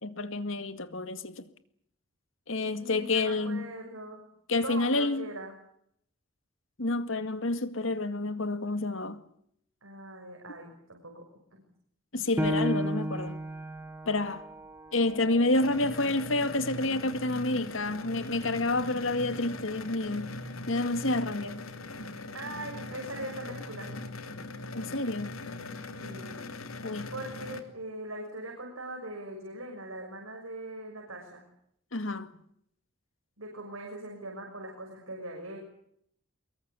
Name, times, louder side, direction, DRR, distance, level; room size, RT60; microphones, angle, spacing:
voice 1, 0.0-1.5 2.5-3.7 4.5-5.3 6.8-9.2 12.1-13.4 14.1-14.4 14.9-20.3 20.7-21.6 24.7-25.3 26.8-27.1 31.9-32.3, left 2 dB, 70° left, 2.1 m, -29 dB
voice 2, 2.8-4.2 4.6-5.5 9.8-11.2 22.3-23.9 26.0-26.4 27.1-31.4 33.4-35.6, right 1 dB, 90° right, 6.5 m, -41 dB
Piano, 12.4-17.5 18.0-18.1 18.7-19.2, equal, 10° right, 1.9 m, -35 dB
sound 1, 15.5-27.6, left 2 dB, 85° left, 2.9 m, -40 dB
24.5 x 22.5 x 8.4 m
head